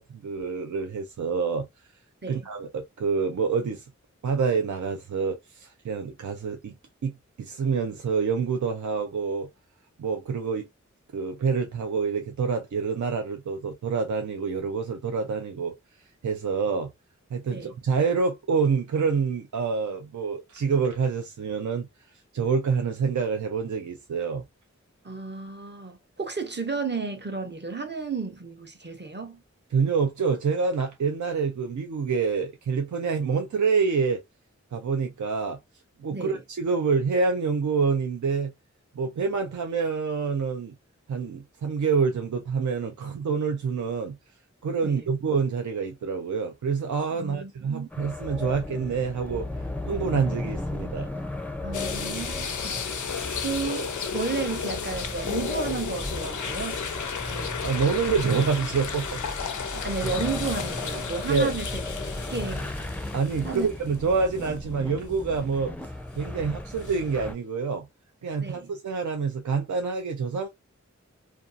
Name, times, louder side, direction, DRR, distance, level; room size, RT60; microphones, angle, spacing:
voice 1, 0.0-1.7 2.3-3.9 4.2-6.7 7.0-7.1 7.4-9.5 10.0-10.7 11.1-15.7 16.2-16.9 17.3-21.9 22.3-24.4 29.7-34.2 34.7-35.6 36.0-38.5 39.0-40.7 41.1-44.2 44.6-49.5 49.9-51.1 57.6-59.4 61.3-61.5 63.1-65.7 66.1-67.9 68.2-70.5, right 5 dB, 80° right, 0.5 m, -27 dB
voice 2, 25.0-29.4 36.1-36.4 44.8-45.1 47.1-47.9 51.6-53.0 53.4-56.8 57.3-57.5 59.7-61.7 62.3-62.7 63.4-63.7 68.4-68.7, right 4 dB, 35° right, 0.7 m, -33 dB
sound 1, 47.9-67.3, left 2 dB, 5° left, 0.4 m, -35 dB
sound 2, 51.7-64.0 64.4-64.5 66.8-67.0, left 6 dB, 90° left, 0.5 m, -33 dB
2.6 x 2.3 x 2.4 m
wide cardioid pair, 50°, 29 cm